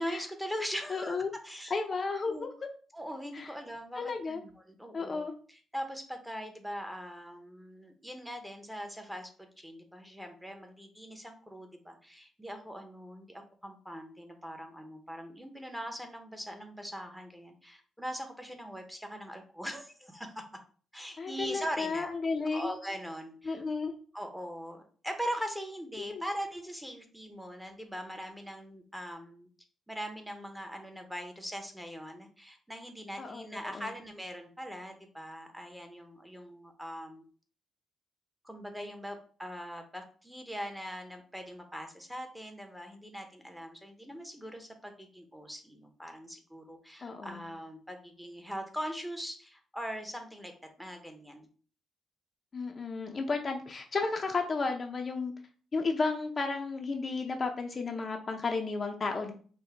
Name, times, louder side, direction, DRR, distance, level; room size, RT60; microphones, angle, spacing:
voice 1, 0.0-1.2 1.4-1.7 2.3-2.5 2.9-20.4 20.9-22.1 22.5-23.6 24.1-29.5 29.9-37.2 38.4-50.5 50.8-51.5, equal, 5° right, 4 dB, 0.8 m, -41 dB
voice 2, 0.9-1.3 1.7-2.5 3.3-3.5 4.0-4.4 4.9-5.3 21.2-22.7 23.5-23.9 26.0-26.3 33.2-33.4 33.7-33.9 47.0-47.4 52.5-55.3 55.7-59.3, left 4 dB, 35° left, 4 dB, 0.5 m, -33 dB
5.4 x 2.2 x 3.3 m, 0.43 s
cardioid pair, 90°, 0 cm